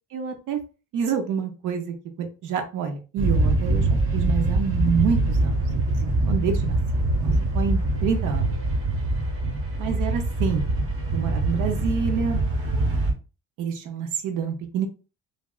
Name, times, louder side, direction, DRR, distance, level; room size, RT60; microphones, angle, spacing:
voice 1, 0.1-0.6 0.9-6.8 7.2-8.5 9.8-10.6 11.1-12.4 13.6-14.9, right 6 dB, 90° right, 6 dB, 0.8 m, -28 dB
sound 1, 3.2-13.1, right 2 dB, 50° right, 1.0 m, -24 dB
3.3 x 2.5 x 2.4 m, 0.32 s
cardioid pair, 90°, 30 cm